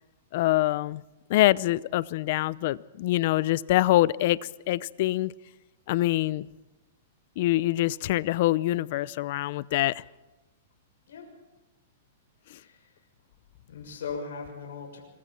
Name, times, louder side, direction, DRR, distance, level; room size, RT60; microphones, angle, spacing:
voice 1, 0.3-1.0 1.3-4.4 4.7-5.3 5.9-6.5 7.4-10.0, left 16 dB, 55° left, 0.6 m, -25 dB
voice 2, 12.5-12.9 13.7-15.0, left 5 dB, 80° left, 6.9 m, -38 dB
26.0 x 24.5 x 4.4 m
hypercardioid pair, 145°, 0 cm